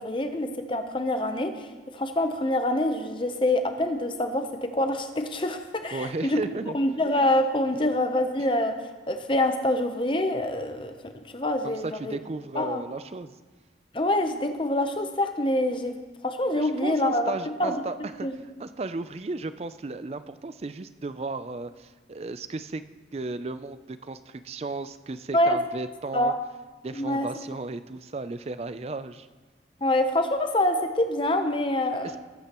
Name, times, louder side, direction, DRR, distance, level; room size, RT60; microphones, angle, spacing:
voice 1, 0.0-1.7 1.9-6.4 6.7-12.2 12.5-12.8 13.9-16.0 16.2-17.3 17.6-17.8 18.2-18.3 25.3-25.6 26.1-26.4 26.9-27.3 29.8-32.2, left 1 dB, 30° left, 7 dB, 0.7 m, -26 dB
voice 2, 5.9-6.8 11.6-13.3 16.5-18.3 18.6-22.8 23.1-26.3 26.8-29.3 32.0-32.2, right 3 dB, 35° right, 12 dB, 0.4 m, -34 dB
19.5 x 9.0 x 3.0 m, 1.3 s
head